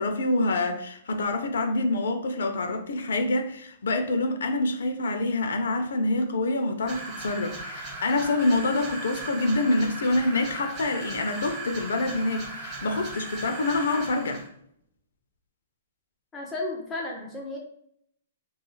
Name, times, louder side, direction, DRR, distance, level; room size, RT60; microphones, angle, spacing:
voice 1, 0.0-14.4, left 2 dB, 90° left, 0.4 m, -26 dB
sound 1, 6.9-14.5, right 2 dB, 20° right, 0.8 m, -37 dB
voice 2, 16.3-17.6, left 2 dB, 10° left, 0.3 m, -33 dB
2.3 x 2.3 x 3.0 m
hypercardioid pair, 175°, 0 cm